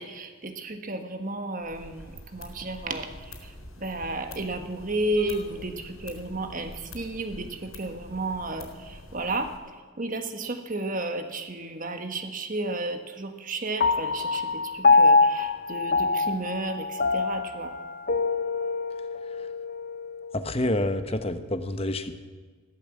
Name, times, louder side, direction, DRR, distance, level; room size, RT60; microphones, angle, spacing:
voice 1, 0.0-17.7, right 2 dB, 40° right, 7 dB, 1.5 m, -33 dB
sound 1, 1.6-9.6, left 1 dB, 85° left, 3.8 m, -46 dB
Piano, 13.8-20.5, left 3 dB, 45° left, 0.6 m, -24 dB
voice 2, 20.3-22.2, left 1 dB, 25° left, 9 dB, 1.0 m, -28 dB
15.5 x 12.0 x 7.6 m, 1.5 s
head